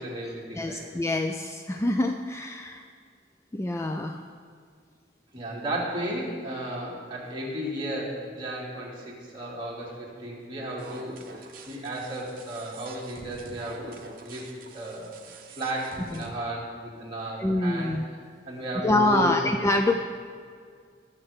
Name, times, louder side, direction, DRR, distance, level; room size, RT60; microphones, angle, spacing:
voice 1, 0.0-0.9 5.3-14.4 14.7-15.2 15.5-17.9 18.5-19.5, right 1 dB, 25° right, -5 dB, 2.5 m, -34 dB
voice 2, 0.6-2.8 3.5-4.2 16.1-16.2 17.4-18.0 18.8-19.9, left 1 dB, 15° left, 5 dB, 0.3 m, -25 dB
sound 1, 10.8-16.3, right 3 dB, 50° right, 1.0 m, -46 dB
20.0 x 6.7 x 3.6 m, 2.1 s
head